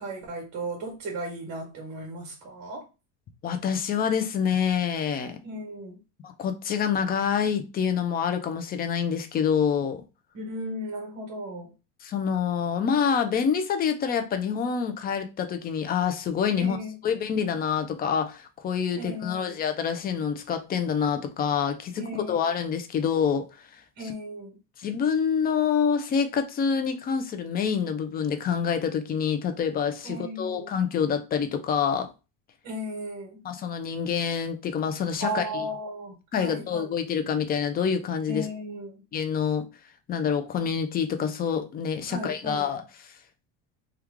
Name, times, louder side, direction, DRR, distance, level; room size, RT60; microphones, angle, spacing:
voice 1, 0.0-2.9 5.4-6.0 10.3-11.7 16.6-17.0 18.9-19.5 22.0-22.5 24.0-24.6 30.0-30.7 32.6-33.4 35.2-36.9 38.3-39.0 42.1-42.7, right 1 dB, 45° right, 1.3 m, -35 dB
voice 2, 3.4-5.4 6.2-10.0 12.0-16.8 17.0-22.0 22.3-23.5 24.8-32.1 33.4-35.6 36.3-38.5 39.1-39.6 40.1-42.8, left 7 dB, 25° left, 0.4 m, -26 dB
3.1 x 2.3 x 3.5 m
cardioid pair, 140°, 39 cm